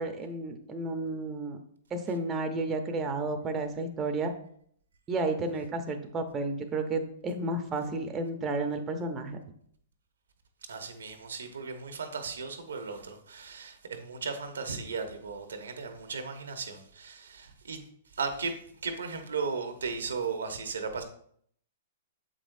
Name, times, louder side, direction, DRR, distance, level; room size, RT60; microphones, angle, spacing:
voice 1, 0.0-1.6 1.9-4.3 5.1-9.4, right 2 dB, 20° right, 0.7 m, -32 dB
voice 2, 10.7-17.8 18.1-21.0, right 5 dB, 90° right, 0.9 m, -36 dB
7.1 x 5.1 x 2.6 m
hypercardioid pair, 130°, 0 cm